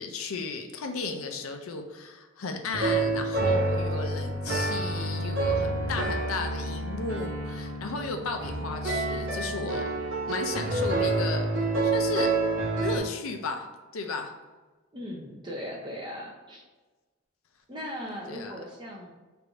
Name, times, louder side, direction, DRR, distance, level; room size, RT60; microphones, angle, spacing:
voice 1, 0.0-9.8 10.3-11.5 11.8-12.3 12.8-13.7 13.9-14.3 18.3-18.6, left 4 dB, 85° left, 5 dB, 0.6 m, -34 dB
sound 1, 2.7-13.0, right 2 dB, 70° right, 1.1 m, -28 dB
voice 2, 14.9-16.6 17.7-19.1, equal, 20° right, -2 dB, 0.6 m, -38 dB
3.3 x 2.6 x 4.5 m, 1.2 s
head